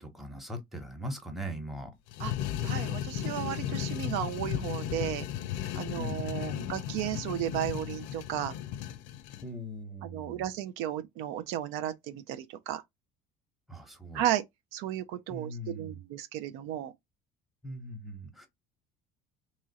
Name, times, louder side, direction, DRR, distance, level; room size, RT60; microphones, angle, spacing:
voice 1, 0.0-1.9 5.9-6.7 9.4-10.5 13.7-14.2 15.3-16.0 17.6-18.5, equal, ahead, 1.0 m, -40 dB
sound 1, 2.1-9.5, left 10 dB, 75° left, 0.5 m, -35 dB
voice 2, 2.6-5.3 5.8-8.5 10.0-12.8 14.1-14.4 14.7-16.9, right 12 dB, 80° right, 0.5 m, -34 dB
3.0 x 2.4 x 4.0 m
cardioid pair, 120°, 20 cm